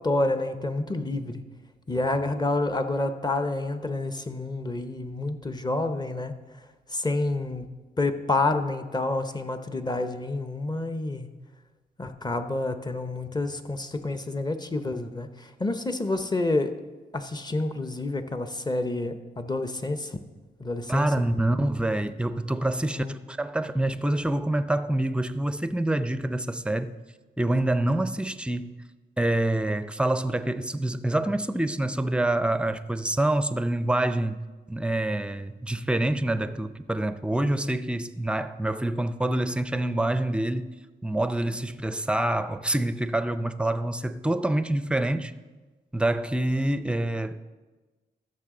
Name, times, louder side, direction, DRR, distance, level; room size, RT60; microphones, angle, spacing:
voice 1, 0.0-1.4 1.9-6.3 6.9-11.3 12.0-16.7 17.1-20.1 20.6-21.1 23.0-23.1, left 2 dB, 25° left, 0.8 m, -28 dB
voice 2, 20.9-27.0 27.4-28.8 29.2-40.7 41.0-45.3 45.9-47.4, right 1 dB, 5° right, 0.5 m, -26 dB
14.5 x 6.5 x 3.8 m
cardioid pair, 70°, 18 cm